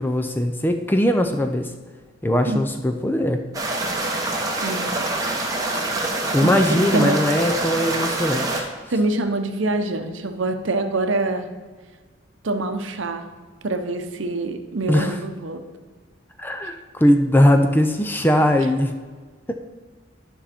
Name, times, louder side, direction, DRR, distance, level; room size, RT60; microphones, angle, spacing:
voice 1, 0.0-1.7 2.2-3.4 6.3-8.7 14.9-15.2 16.4-18.9, left 1 dB, 10° left, 6 dB, 0.4 m, -20 dB
sound 1, 3.5-8.6, right 2 dB, 15° right, 0.9 m, -25 dB
voice 2, 4.6-4.9 6.4-7.2 8.9-11.5 12.4-13.3 13.6-15.6, right 2 dB, 70° right, 7 dB, 0.8 m, -25 dB
11.5 x 5.5 x 4.3 m, 1.4 s
head